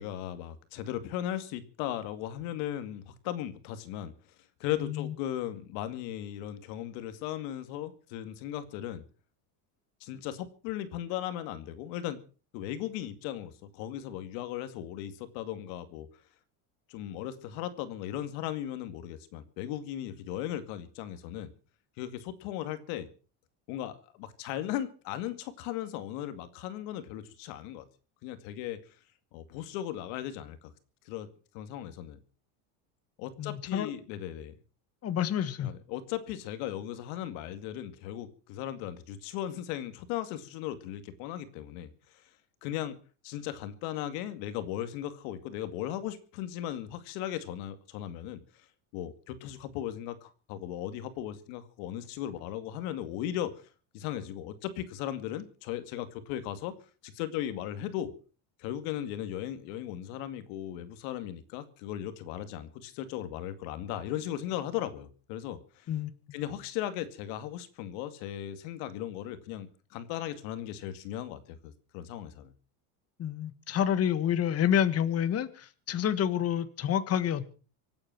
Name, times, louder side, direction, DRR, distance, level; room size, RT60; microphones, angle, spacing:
voice 1, 0.0-4.1 4.6-9.0 10.0-12.2 12.5-16.1 16.9-21.5 22.0-23.1 23.7-27.9 28.2-28.8 29.3-30.7 31.1-31.3 31.5-32.2 33.2-34.5 35.6-41.9 42.6-43.0 43.2-48.4 48.9-53.5 53.9-56.7 57.0-58.1 58.6-65.9 66.3-72.5, left 11 dB, 75° left, 11 dB, 2.3 m, -37 dB
voice 2, 4.8-5.1 33.4-33.9 35.0-35.7 65.9-66.3 73.2-77.5, left 9 dB, 35° left, 12 dB, 1.5 m, -28 dB
25.0 x 8.8 x 6.0 m, 0.38 s
supercardioid pair, 130°, 43 cm